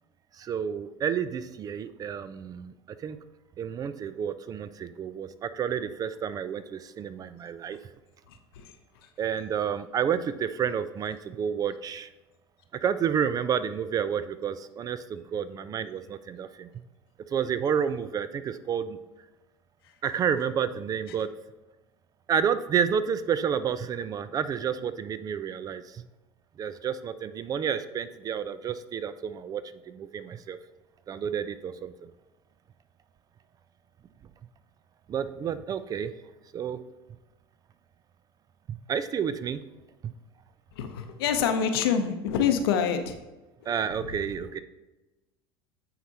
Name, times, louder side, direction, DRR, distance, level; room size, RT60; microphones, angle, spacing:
voice 1, 0.4-2.7 3.0-3.2 3.6-7.8 9.2-12.1 12.8-16.7 17.3-19.0 20.0-21.3 22.3-26.0 26.6-30.6 31.1-31.9 35.1-36.1 36.5-36.8 38.7-39.6 40.0-40.1 43.7-44.6, right 8 dB, 30° right, 13 dB, 0.3 m, -30 dB
voice 2, 8.3-8.7 40.8-43.2, left 7 dB, 65° left, 7 dB, 0.7 m, -26 dB
9.3 x 4.2 x 2.8 m, 1.1 s
figure-of-eight pair, 75°, 13 cm